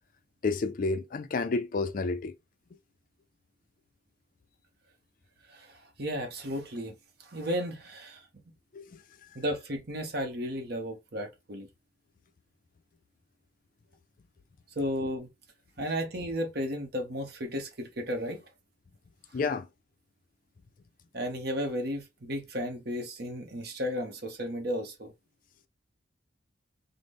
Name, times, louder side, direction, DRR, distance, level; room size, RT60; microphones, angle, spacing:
voice 1, 0.4-2.3 8.7-9.0 19.3-19.7, left 4 dB, 45° left, 0.4 m, -30 dB
voice 2, 6.0-6.9 7.2-8.2 9.3-11.7 14.8-15.3 15.8-18.4 21.1-25.1, equal, 55° right, 0.9 m, -34 dB
3.8 x 2.1 x 3.4 m
head